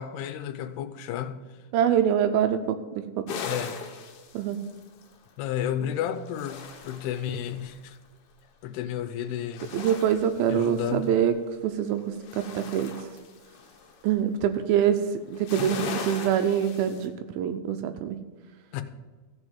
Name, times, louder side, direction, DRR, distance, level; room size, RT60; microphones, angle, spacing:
voice 1, 0.0-1.4 3.4-3.8 5.4-8.0 8.6-9.8 10.5-11.2 18.7-18.8, left 9 dB, 85° left, 2.7 m, -32 dB
voice 2, 1.7-3.2 4.3-4.6 9.7-11.3 11.6-12.9 14.0-15.0 15.3-18.2, right 9 dB, 80° right, 2.3 m, -25 dB
sound 1, 3.3-5.2 6.0-7.7 9.4-11.3 11.7-14.1 15.3-17.1, left 6 dB, 65° left, 2.0 m, -39 dB
14.5 x 4.8 x 7.2 m
omnidirectional pair, 4.6 m